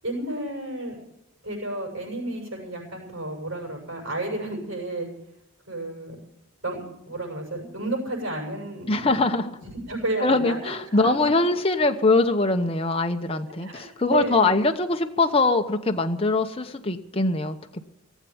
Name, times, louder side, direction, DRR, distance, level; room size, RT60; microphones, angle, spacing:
voice 1, 0.0-1.0 1.4-5.1 5.7-6.2 6.6-6.8 7.1-9.2 9.6-11.3 13.5-14.6, right 2 dB, 65° right, -2 dB, 7.3 m, -32 dB
voice 2, 8.9-9.5 10.2-17.6, left 3 dB, 25° left, 5 dB, 0.9 m, -22 dB
18.5 x 8.3 x 9.4 m, 0.86 s
head